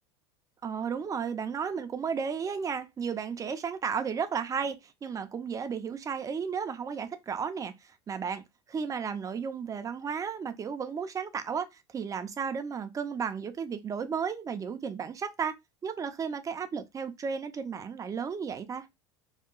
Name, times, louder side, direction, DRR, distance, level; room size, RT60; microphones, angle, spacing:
voice 1, 0.6-8.4 8.7-15.5 15.8-18.9, right 6 dB, 25° right, 0.4 m, -34 dB
2.8 x 2.1 x 2.4 m
hypercardioid pair, 85°, 14 cm